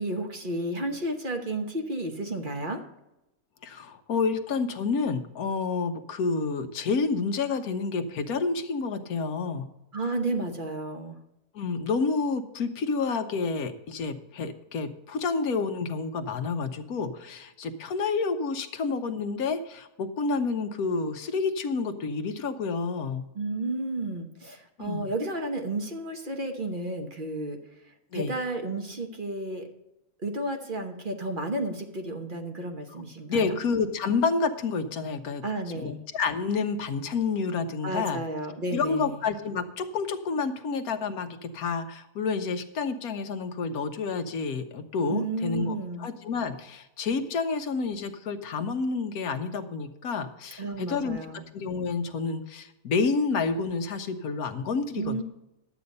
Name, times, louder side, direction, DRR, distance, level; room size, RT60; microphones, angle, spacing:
voice 1, 0.0-2.8 9.9-11.2 23.3-27.6 28.1-29.7 30.2-33.6 35.4-36.0 37.8-39.2 45.1-46.1 50.6-51.4 54.9-55.2, right 2 dB, 40° right, 4 dB, 1.1 m, -32 dB
voice 2, 3.6-9.7 11.5-23.3 24.8-25.1 28.1-28.4 33.3-35.4 35.7-38.2 38.7-51.2 51.5-55.2, left 4 dB, 90° left, 8 dB, 1.4 m, -29 dB
11.0 x 8.2 x 5.3 m, 0.91 s
omnidirectional pair, 1.5 m